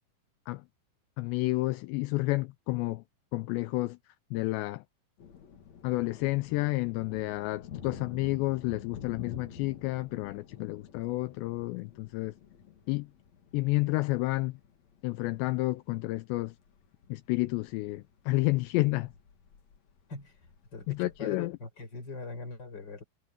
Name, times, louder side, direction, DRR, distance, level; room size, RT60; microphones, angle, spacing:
voice 1, 1.2-3.0 3.3-4.0 4.3-4.8 5.8-12.3 12.9-13.1 13.5-14.6 15.0-16.5 17.1-19.1 20.9-21.5, left 21 dB, 85° left, 2.5 m, -30 dB
sound 1, 5.2-21.2, left 7 dB, 50° left, 2.3 m, -49 dB
voice 2, 20.7-23.0, left 3 dB, 20° left, 5.3 m, -41 dB
omnidirectional pair, 5.6 m